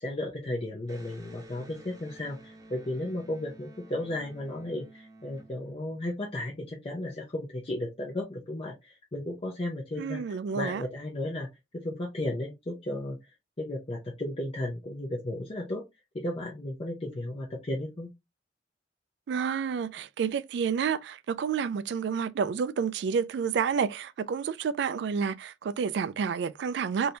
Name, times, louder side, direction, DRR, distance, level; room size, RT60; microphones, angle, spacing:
voice 1, 0.0-11.5 11.7-15.8 16.1-18.1, left 1 dB, 30° left, 0.6 m, -34 dB
Electric guitar, 0.8-6.3, right 1 dB, 20° right, 0.7 m, -52 dB
voice 2, 10.0-10.8 19.3-27.2, right 6 dB, 65° right, 0.3 m, -29 dB
3.3 x 2.7 x 2.7 m
head